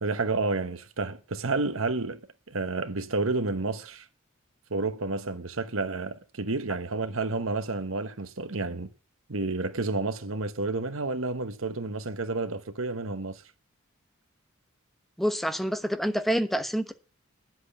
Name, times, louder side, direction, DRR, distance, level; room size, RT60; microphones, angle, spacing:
voice 1, 0.0-2.2 2.5-4.1 4.7-8.9 9.3-13.4, right 3 dB, 80° right, 1.2 m, -30 dB
voice 2, 15.2-16.9, equal, ahead, 1.1 m, -27 dB
10.0 x 7.9 x 8.8 m
head